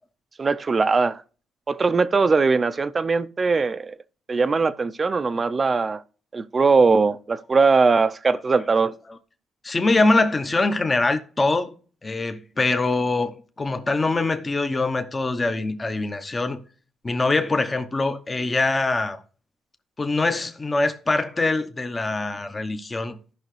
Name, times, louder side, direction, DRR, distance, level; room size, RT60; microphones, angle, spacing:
voice 1, 0.4-1.2 1.7-3.9 4.3-6.0 6.3-8.9, right 4 dB, 35° right, 0.6 m, -20 dB
voice 2, 9.6-11.7 12.0-16.6 17.0-19.2 20.0-23.2, left 3 dB, 25° left, 1.0 m, -23 dB
14.5 x 5.7 x 3.2 m
cardioid pair, 90°, 0 cm